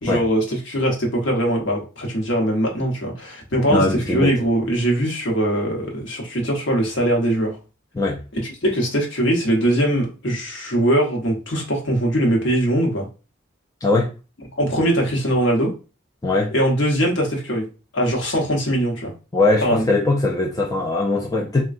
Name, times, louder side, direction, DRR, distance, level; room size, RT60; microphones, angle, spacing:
voice 1, 0.0-7.6 8.3-13.1 14.6-15.7 16.5-17.7 17.9-19.1 19.6-19.9, right 1 dB, 60° left, 0.9 m, -21 dB
voice 2, 3.7-4.3 7.9-8.2 13.8-14.1 16.2-16.5 19.3-21.6, left 2 dB, 15° left, 0.3 m, -20 dB
3.5 x 2.2 x 2.5 m
head